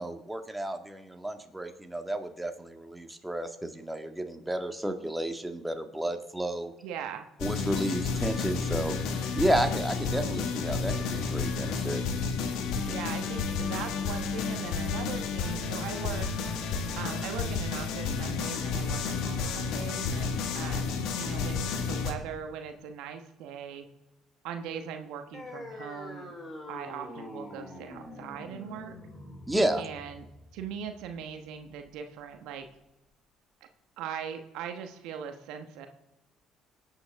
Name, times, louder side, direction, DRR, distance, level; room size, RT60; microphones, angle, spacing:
voice 1, 0.0-6.7 7.4-8.9 9.3-12.0 29.5-29.8, right 1 dB, 10° right, 5 dB, 1.8 m, -31 dB
voice 2, 6.8-7.3 12.9-16.3 17.0-23.9 24.4-26.3 26.7-28.9 29.8-30.3 30.5-32.7 34.0-35.9, right 8 dB, 75° right, 6 dB, 1.2 m, -40 dB
sound 1, 7.4-22.1, left 5 dB, 70° left, 1.6 m, -31 dB
sound 2, 25.3-32.3, left 1 dB, 30° left, 5.1 m, -45 dB
25.5 x 8.8 x 3.6 m, 1.0 s
hypercardioid pair, 55°, 0 cm